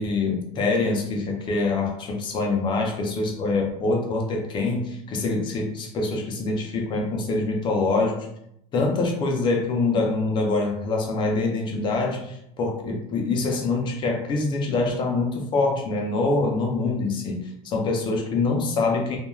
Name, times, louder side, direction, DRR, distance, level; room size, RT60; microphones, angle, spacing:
voice 1, 0.0-8.2 8.7-19.2, left 3 dB, 30° left, 1 dB, 0.4 m, -25 dB
2.3 x 2.1 x 3.0 m, 0.76 s
cardioid pair, 180°, 17 cm